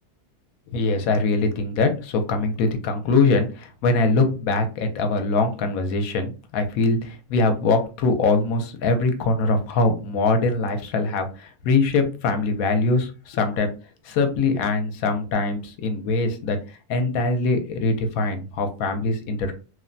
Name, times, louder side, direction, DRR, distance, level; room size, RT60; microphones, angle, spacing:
voice 1, 0.7-13.7 14.0-16.6 16.9-19.5, left 3 dB, 70° left, 6 dB, 0.9 m, -22 dB
3.1 x 2.1 x 2.5 m, 0.33 s
omnidirectional pair, 1.7 m